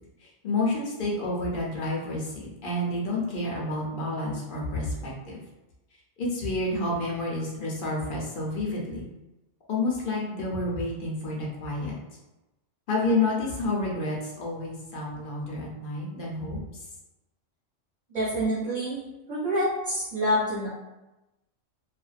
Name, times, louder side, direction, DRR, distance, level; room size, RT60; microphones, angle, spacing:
voice 1, 0.2-5.4 6.2-9.1 9.7-11.9 12.9-16.8, left 2 dB, 55° left, -4 dB, 0.7 m, -29 dB
voice 2, 18.1-19.0 19.3-20.7, equal, 40° right, -11 dB, 0.9 m, -27 dB
2.5 x 2.1 x 2.4 m, 1.0 s
omnidirectional pair, 1.3 m